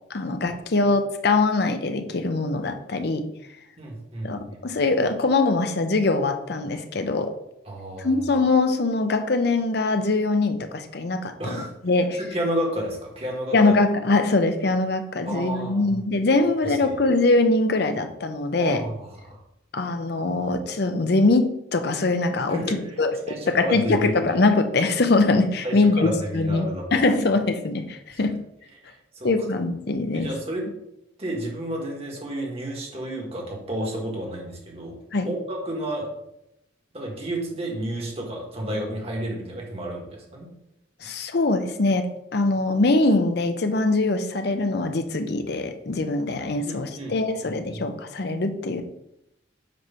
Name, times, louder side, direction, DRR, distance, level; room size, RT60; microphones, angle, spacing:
voice 1, 0.1-3.3 4.2-7.3 8.0-12.2 13.5-18.8 19.7-28.4 29.2-30.3 35.1-35.3 41.0-48.8, left 3 dB, 55° left, 8 dB, 0.6 m, -23 dB
voice 2, 3.8-4.3 7.7-8.1 11.4-11.7 12.2-13.5 15.2-15.9 16.6-16.9 18.5-19.4 22.5-22.9 23.3-24.1 25.6-26.8 28.1-28.2 28.9-29.3 30.1-30.6 31.2-34.9 35.2-36.1 36.9-40.5 46.6-47.9, right 1 dB, 30° right, -1 dB, 1.5 m, -31 dB
7.7 x 3.2 x 5.6 m, 0.83 s
head